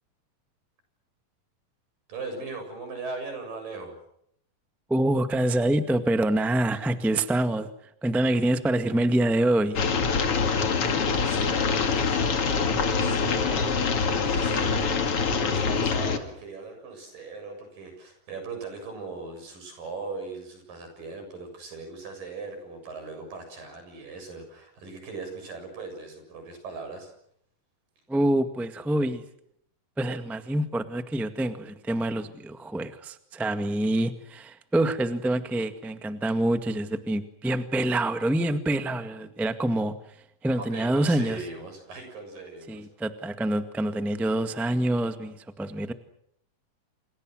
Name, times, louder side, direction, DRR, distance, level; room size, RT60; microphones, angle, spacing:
voice 1, 2.1-4.0 10.8-27.1 40.6-42.9, right 3 dB, 80° right, 6 dB, 8.9 m, -39 dB
voice 2, 4.9-7.7 8.0-9.8 28.1-29.2 30.0-39.9 40.4-41.4 42.7-45.9, right 1 dB, ahead, 8 dB, 0.4 m, -26 dB
sound 1, 9.8-16.2, left 5 dB, 45° left, 2.9 m, -25 dB
28.5 x 28.0 x 6.4 m, 0.74 s
omnidirectional pair, 3.9 m